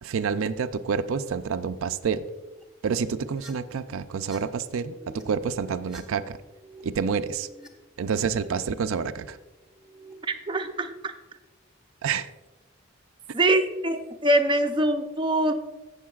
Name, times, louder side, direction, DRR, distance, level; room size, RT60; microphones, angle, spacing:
voice 1, 0.0-2.2 2.8-6.4 6.8-7.5 8.0-9.4 12.0-12.3, right 6 dB, 75° right, 10 dB, 0.4 m, -28 dB
sound 1, 2.3-2.6 3.2-3.5 4.1-4.4 4.6-5.2 5.7-6.8 7.1-7.7 8.0-8.5 9.5-10.1, right 1 dB, 5° right, 0.9 m, -51 dB
voice 2, 10.2-11.1 13.3-15.5, right 1 dB, 20° right, 5 dB, 0.5 m, -24 dB
16.0 x 6.7 x 2.4 m, 1.1 s
head